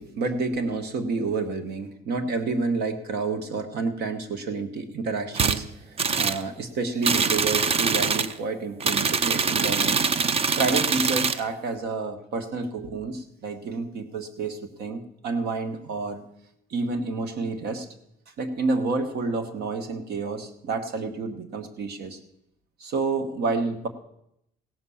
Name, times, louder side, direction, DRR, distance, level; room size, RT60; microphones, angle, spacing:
voice 1, 0.0-5.6 6.2-10.1 10.6-16.2 16.7-17.9 18.4-22.2 22.8-23.9, right 3 dB, 70° right, 8 dB, 1.5 m, -29 dB
sound 1, 5.4-5.6 6.0-6.4 7.0-8.3 8.8-11.4, right 5 dB, 35° right, 0.6 m, -23 dB
16.5 x 6.1 x 7.1 m, 0.78 s
cardioid pair, 110°, 17 cm